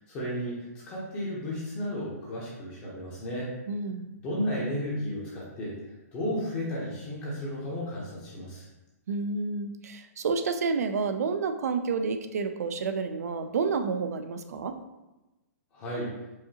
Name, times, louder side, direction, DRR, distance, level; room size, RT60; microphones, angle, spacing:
voice 1, 0.1-3.5 4.2-5.8 6.1-8.7 15.7-16.1, equal, 20° left, -6 dB, 0.8 m, -33 dB
voice 2, 3.7-4.1 9.1-14.7, right 4 dB, 70° right, 8 dB, 0.4 m, -30 dB
4.8 x 2.7 x 2.8 m, 1.0 s
hypercardioid pair, 160°, 9 cm